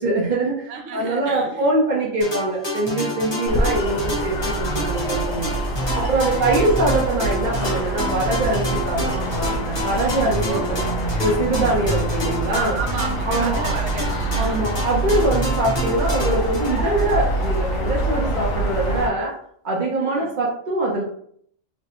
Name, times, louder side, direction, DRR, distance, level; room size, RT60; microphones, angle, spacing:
voice 1, 0.0-5.5 5.9-10.8 11.2-12.8 13.3-13.7 14.4-19.3 19.6-21.0, right 2 dB, 45° right, -4 dB, 0.7 m, -23 dB
voice 2, 0.7-1.7 2.0-2.3 3.2-3.6 5.3-5.8 6.2-6.7 10.4-11.0 11.8-12.1 12.8-14.7 18.2-18.8 20.0-20.3, right 4 dB, 75° right, 2 dB, 0.9 m, -35 dB
sound 1, 2.2-17.6, equal, 25° left, 0.9 m, -29 dB
sound 2, 3.5-19.1, right 2 dB, 85° left, 1.1 m, -25 dB
3.2 x 2.1 x 2.9 m, 0.64 s
omnidirectional pair, 1.3 m